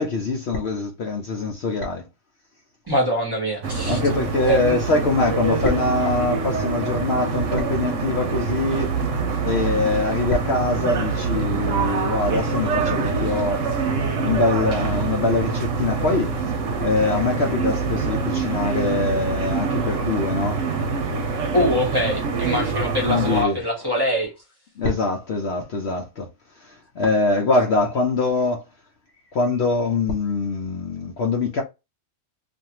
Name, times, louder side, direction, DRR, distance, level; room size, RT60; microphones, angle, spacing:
voice 1, 0.0-2.1 3.8-8.9 9.4-13.6 14.2-16.3 16.8-20.6 23.0-23.6 24.8-26.3 26.6-28.6 29.3-31.6, left 3 dB, 60° left, 0.8 m, -23 dB
voice 2, 2.9-4.0 4.4-4.8 21.5-24.3, equal, 20° right, 0.9 m, -23 dB
sound 1, 3.6-23.4, right 4 dB, 70° right, 1.0 m, -25 dB
2.6 x 2.4 x 2.8 m
omnidirectional pair, 1.4 m